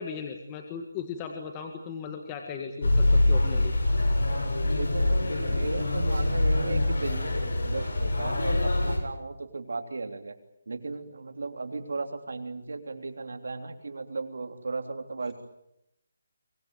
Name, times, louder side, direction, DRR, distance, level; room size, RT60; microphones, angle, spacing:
voice 1, 0.0-3.7, left 6 dB, 15° left, 4 dB, 1.8 m, -37 dB
sound 1, 2.8-9.0, left 1 dB, 75° left, 7.9 m, -25 dB
voice 2, 4.6-7.4 7.6-10.3 10.7-15.3, right 3 dB, 75° right, 6 dB, 3.4 m, -36 dB
24.0 x 19.5 x 9.2 m, 0.82 s
hypercardioid pair, 170°, 0 cm